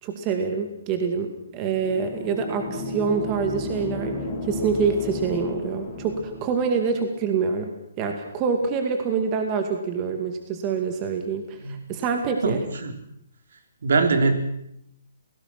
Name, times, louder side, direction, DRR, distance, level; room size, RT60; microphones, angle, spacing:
voice 1, 0.0-12.6, right 5 dB, 25° right, 5 dB, 2.3 m, -26 dB
sound 1, 1.7-6.7, left 2 dB, 15° left, 6.2 m, -33 dB
voice 2, 12.4-13.0 13.8-14.4, right 4 dB, 70° right, 6 dB, 4.0 m, -22 dB
28.0 x 18.5 x 6.1 m, 0.75 s
hypercardioid pair, 160°, 0 cm